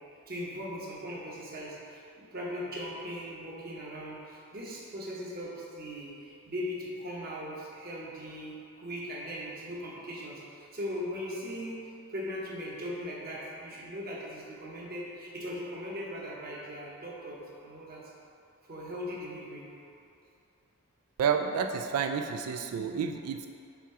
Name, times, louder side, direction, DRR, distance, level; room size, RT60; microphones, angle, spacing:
voice 1, 0.3-11.8 12.1-18.0 18.7-19.7, equal, 45° right, -4 dB, 1.0 m, -39 dB
voice 2, 21.2-23.5, right 6 dB, 75° right, 9 dB, 0.3 m, -30 dB
5.9 x 3.6 x 4.8 m, 2.6 s
head